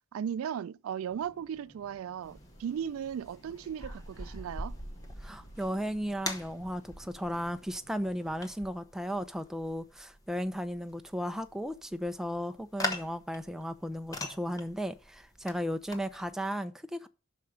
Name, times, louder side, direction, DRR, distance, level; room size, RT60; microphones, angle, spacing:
voice 1, 0.1-4.8, right 8 dB, 90° right, 0.3 m, -36 dB
sound 1, 1.1-8.5, equal, 35° left, 1.3 m, -59 dB
sound 2, 2.2-16.3, left 1 dB, 15° left, 0.9 m, -43 dB
voice 2, 5.2-17.1, equal, ahead, 0.4 m, -35 dB
5.8 x 4.9 x 6.4 m
head